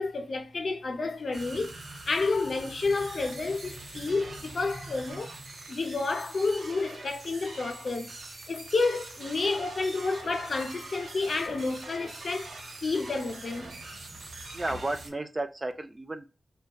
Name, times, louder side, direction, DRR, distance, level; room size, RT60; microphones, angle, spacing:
voice 1, 0.0-1.8 2.1-5.4 5.7-8.1 8.5-12.5 12.8-13.7, left 3 dB, 60° left, 0.6 m, -30 dB
sound 1, 1.3-15.1, right 2 dB, 90° right, 0.8 m, -43 dB
voice 2, 14.5-16.2, right 2 dB, 25° right, 0.4 m, -33 dB
2.7 x 2.2 x 2.2 m
wide cardioid pair, 105°, 0 cm